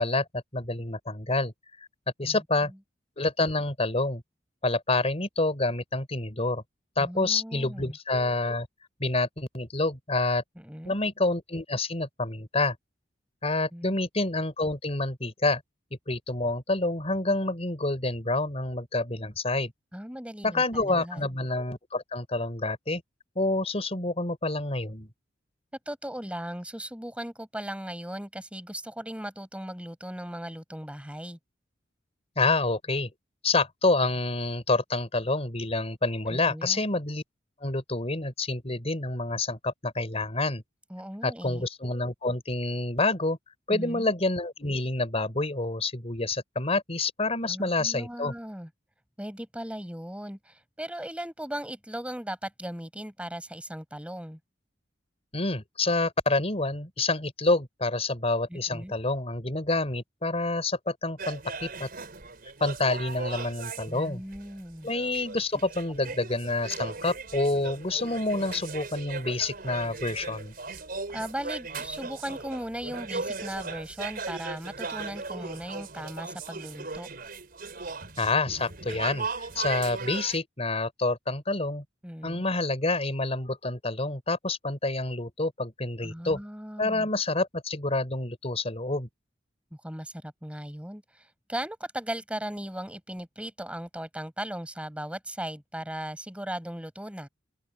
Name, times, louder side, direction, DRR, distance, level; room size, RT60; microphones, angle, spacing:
voice 1, 0.0-1.5 1.8-1.9 2.2-2.7 3.2-4.2 4.6-6.6 7.0-8.7 9.0-10.4 10.8-12.8 13.4-15.6 16.1-19.7 20.4-23.0 23.3-25.1 32.4-33.1 33.4-37.2 37.6-40.6 41.2-43.4 43.7-48.3 55.3-61.9 62.6-64.2 64.8-70.5 78.2-81.8 82.2-86.4 86.8-89.1, left 2 dB, 35° left, 4.6 m, -28 dB
voice 2, 2.2-2.8 7.0-8.0 10.6-11.0 13.7-13.9 19.9-21.3 25.9-31.4 36.3-36.8 40.9-41.7 43.7-44.1 47.4-48.7 49.2-54.4 58.5-59.0 63.9-64.9 66.0-66.1 71.1-77.1 82.0-82.4 86.0-87.1 89.8-97.3, right 1 dB, 5° right, 6.0 m, -38 dB
sound 1, 61.2-80.4, right 4 dB, 55° right, 4.7 m, -38 dB
open air
head